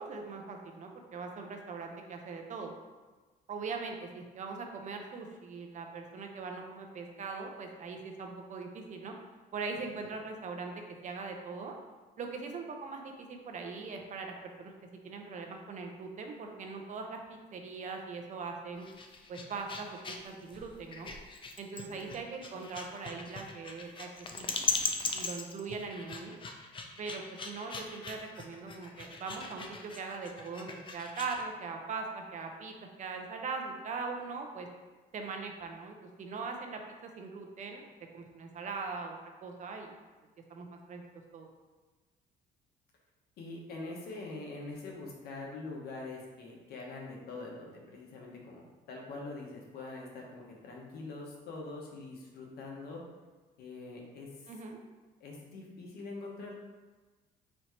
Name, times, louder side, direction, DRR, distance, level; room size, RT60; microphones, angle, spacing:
voice 1, 0.0-2.7 3.5-9.1 9.5-10.7 11.0-11.7 12.2-14.7 15.0-18.9 19.3-19.9 20.2-21.1 21.6-24.1 24.4-24.5 25.1-26.4 27.0-32.7 33.0-34.7 35.1-37.9 38.1-39.9 40.5-41.0 41.3-41.5 54.5-54.8, right 4 dB, 45° right, 3 dB, 0.7 m, -41 dB
sound 1, 18.7-31.4, left 4 dB, 30° left, 0.5 m, -39 dB
voice 2, 43.4-53.0 53.6-54.5 55.2-56.5, left 3 dB, 70° left, -1 dB, 1.1 m, -44 dB
4.3 x 2.7 x 4.5 m, 1.3 s
cardioid pair, 110°, 17 cm